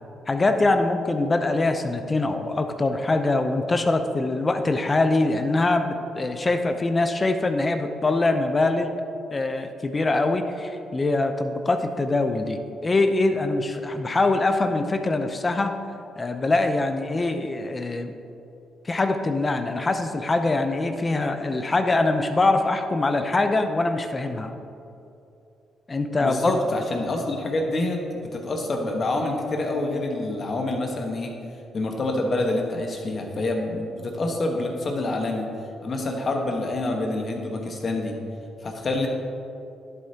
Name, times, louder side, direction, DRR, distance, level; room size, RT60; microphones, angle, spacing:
voice 1, 0.3-8.9 9.3-15.8 16.2-18.1 18.8-24.5 25.9-26.5, left 2 dB, 25° left, 7 dB, 0.6 m, -23 dB
voice 2, 26.2-31.3 31.7-35.5 35.8-38.2 38.6-39.1, left 2 dB, 45° left, 2 dB, 1.3 m, -27 dB
11.0 x 7.8 x 2.9 m, 2.7 s
cardioid pair, 90°, 0 cm